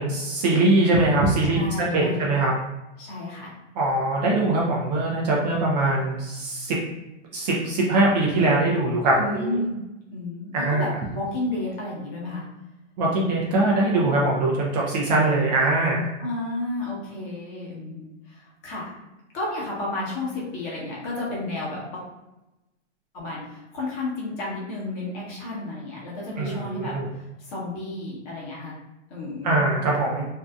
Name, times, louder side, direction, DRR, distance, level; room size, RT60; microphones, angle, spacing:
voice 1, 0.0-2.5 3.8-6.8 7.3-9.6 10.5-10.8 13.0-16.1 26.4-27.1 29.4-30.3, right 2 dB, 35° right, -3 dB, 0.5 m, -22 dB
voice 2, 1.5-2.3 3.0-3.5 9.2-9.8 10.1-12.4 16.2-18.9 19.3-22.0 23.1-28.8 29.1-29.6, left 2 dB, 35° left, -5 dB, 0.9 m, -32 dB
2.6 x 2.4 x 2.3 m, 0.99 s
hypercardioid pair, 135°, 36 cm